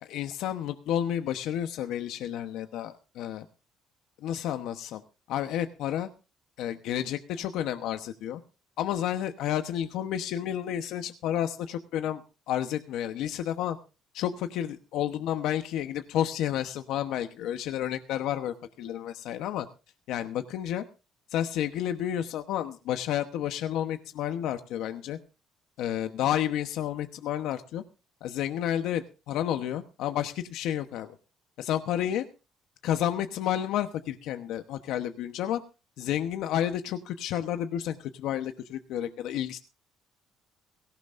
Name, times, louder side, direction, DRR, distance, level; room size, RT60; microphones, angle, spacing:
voice 1, 0.0-3.4 4.2-5.0 5.3-6.1 6.6-8.4 8.8-12.2 12.5-13.8 14.1-19.7 20.1-20.8 21.3-25.2 25.8-27.8 28.2-31.2 31.6-32.2 32.8-35.6 36.0-39.6, left 11 dB, 80° left, 8 dB, 1.0 m, -31 dB
18.5 x 17.5 x 2.6 m, 0.32 s
cardioid pair, 105°, 0 cm